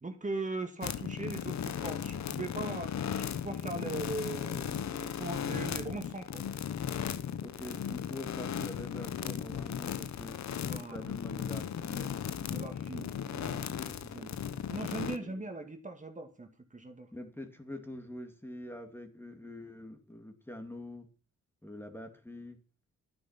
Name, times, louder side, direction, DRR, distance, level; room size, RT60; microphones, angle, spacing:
voice 1, 0.0-6.4 10.6-11.1 12.4-14.4 14.7-17.1, right 2 dB, 25° right, 5 dB, 2.0 m, -40 dB
sound 1, 0.8-15.2, left 8 dB, 65° left, 1.0 m, -36 dB
voice 2, 7.4-10.4 10.9-12.2 14.5-14.8 15.2-15.5 17.1-21.1 21.6-22.6, left 1 dB, 5° left, 6 dB, 2.3 m, -45 dB
12.0 x 10.0 x 5.8 m, 0.35 s
cardioid pair, 90°, 30 cm